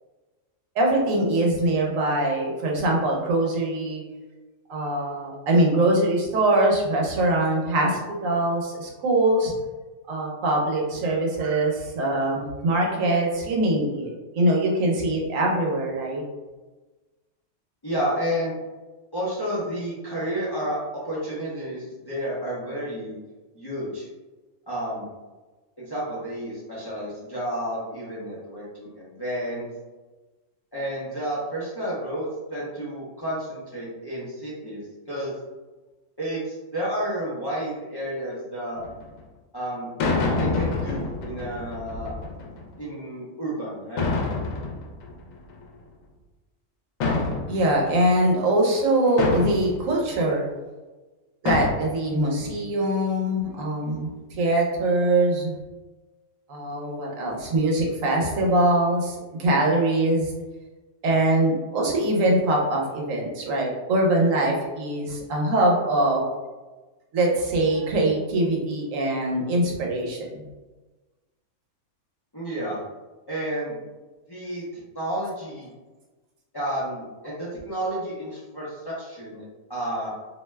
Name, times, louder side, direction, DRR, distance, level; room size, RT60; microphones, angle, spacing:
voice 1, 0.8-4.0 4.7-9.5 10.1-16.2 47.5-50.4 51.4-54.1 54.4-55.6 56.5-60.3 61.0-66.2 67.1-70.4, right 1 dB, 80° right, -1 dB, 1.1 m, -23 dB
voice 2, 17.8-18.5 19.1-20.8 21.0-23.1 23.5-24.1 24.7-25.1 25.8-29.7 30.7-32.2 32.5-35.3 36.2-38.8 39.5-39.9 40.4-42.1 42.8-44.0 72.3-72.8 73.3-73.8 74.3-74.6 74.9-75.7 76.5-79.4 79.7-80.1, right 1 dB, 25° left, -8 dB, 0.5 m, -31 dB
sound 1, 38.8-39.0 40.0-42.6 44.0-45.7 47.0-48.0 49.2-49.9 51.4-51.7, left 3 dB, 85° left, 1.0 m, -27 dB
2.7 x 2.2 x 3.2 m, 1.2 s
omnidirectional pair, 1.4 m